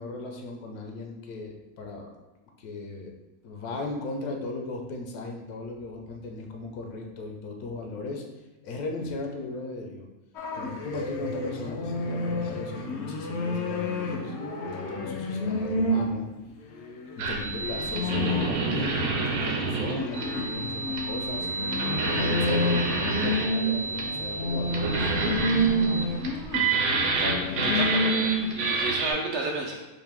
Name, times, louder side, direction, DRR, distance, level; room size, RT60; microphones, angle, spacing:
voice 1, 0.0-2.1 2.6-3.1 3.4-8.2 8.6-10.1 10.6-16.3 17.2-21.5 22.0-25.1, left 2 dB, 90° left, 2 dB, 1.2 m, -37 dB
sound 1, 10.4-16.1 16.7-18.8 19.3-28.6, left 1 dB, 65° left, 0.7 m, -29 dB
sound 2, 17.2-29.1, right 4 dB, 85° right, 1.1 m, -29 dB
voice 2, 27.2-28.2 28.5-29.7, right 2 dB, 65° right, -1 dB, 0.7 m, -31 dB
4.1 x 2.6 x 3.4 m, 1.1 s
omnidirectional pair, 1.5 m